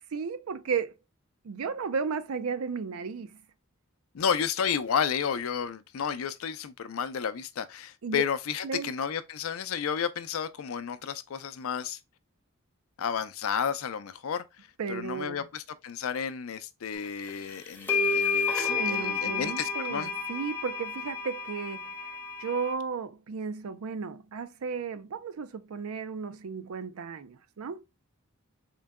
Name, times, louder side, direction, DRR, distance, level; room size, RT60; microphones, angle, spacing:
voice 1, 0.1-1.0 1.4-3.4 8.0-8.2 8.6-8.9 14.8-15.4 18.8-27.8, right 5 dB, 80° right, 0.5 m, -34 dB
voice 2, 4.1-12.0 13.0-14.4 14.9-20.1, left 7 dB, 70° left, 0.4 m, -32 dB
sound 1, 17.3-17.4 17.9-22.7, left 5 dB, 10° left, 0.7 m, -30 dB
3.8 x 2.2 x 3.4 m
head